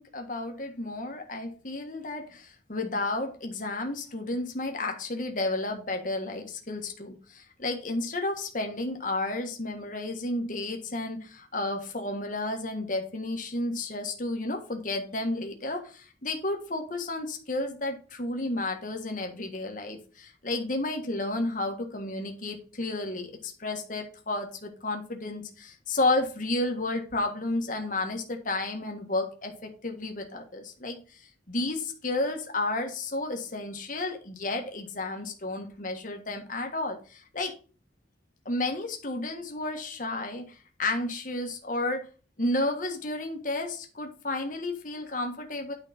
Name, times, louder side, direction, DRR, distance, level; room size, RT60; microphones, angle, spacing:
voice 1, 0.0-37.5 38.4-42.1 42.4-45.7, left 2 dB, 45° left, 3 dB, 1.6 m, -32 dB
9.4 x 5.1 x 4.1 m, 0.37 s
head